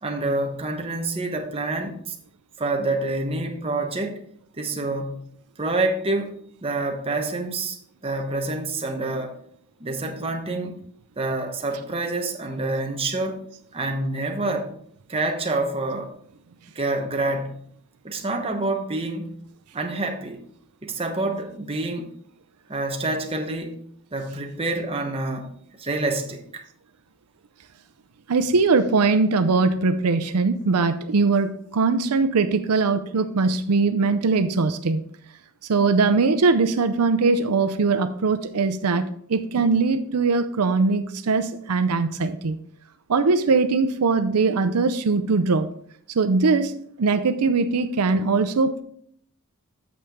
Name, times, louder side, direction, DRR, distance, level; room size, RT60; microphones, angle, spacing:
voice 1, 0.0-2.2 2.6-4.2 4.6-5.3 5.6-7.8 8.0-9.4 9.8-10.8 11.2-13.4 13.7-14.7 15.1-16.1 16.7-17.7 18.0-19.3 19.7-20.4 20.8-22.1 22.7-23.8 24.1-26.6, right 2 dB, 25° right, 1.0 m, -27 dB
voice 2, 28.3-35.0 35.7-42.6 43.1-45.7 46.1-46.7 47.0-48.8, right 4 dB, 85° right, 0.5 m, -21 dB
8.6 x 6.7 x 3.6 m
head